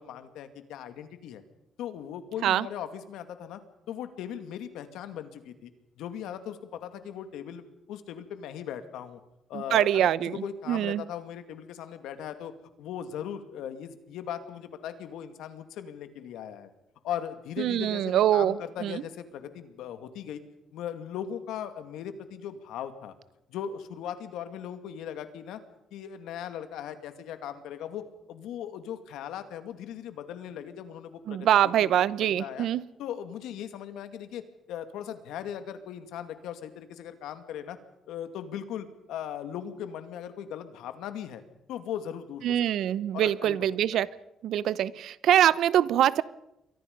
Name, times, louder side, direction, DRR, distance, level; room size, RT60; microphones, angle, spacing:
voice 1, 0.0-1.4 1.8-3.6 3.9-5.7 6.0-9.2 9.5-12.5 12.8-16.7 17.0-20.4 20.7-23.1 23.5-25.6 25.9-31.4 31.8-32.7 33.0-37.8 38.1-41.4 41.7-43.7, left 9 dB, 90° left, 9 dB, 2.3 m, -38 dB
voice 2, 9.5-10.3 10.7-11.0 17.6-19.0 31.3-32.8 42.4-44.1 44.4-46.2, right 11 dB, 75° right, 19 dB, 0.8 m, -24 dB
28.5 x 23.5 x 5.4 m, 0.89 s
cardioid pair, 90°, 0 cm